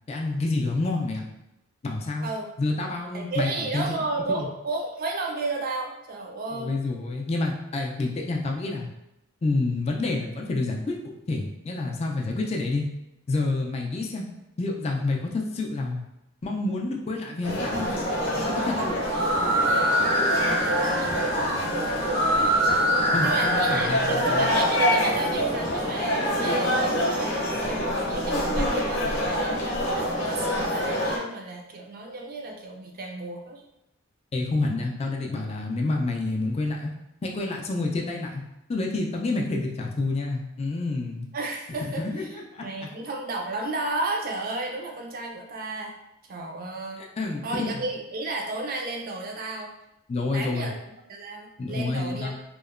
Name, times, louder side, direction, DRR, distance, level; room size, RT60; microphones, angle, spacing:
voice 1, 0.1-1.3 1.8-2.3 2.6-4.0 4.3-4.5 6.5-8.9 9.4-11.0 11.3-12.9 13.3-14.3 14.6-16.0 16.4-18.0 18.4-18.9 23.1-24.4 34.3-36.9 37.2-38.4 38.7-41.3 41.8-42.9 47.0-47.8 50.1-50.7 51.6-52.4, left 2 dB, 30° left, 0 dB, 0.3 m, -28 dB
voice 2, 3.1-6.8 20.3-22.3 23.2-33.6 41.3-42.0 42.6-45.9 46.3-47.0 47.4-49.7 50.3-50.7 51.1-52.5, right 2 dB, 45° right, 1 dB, 0.4 m, -33 dB
sound 1, 17.4-31.2, equal, 60° left, 0.6 m, -26 dB
sound 2, 19.0-24.8, right 1 dB, 85° right, 0.7 m, -25 dB
2.8 x 2.1 x 2.4 m, 0.87 s
head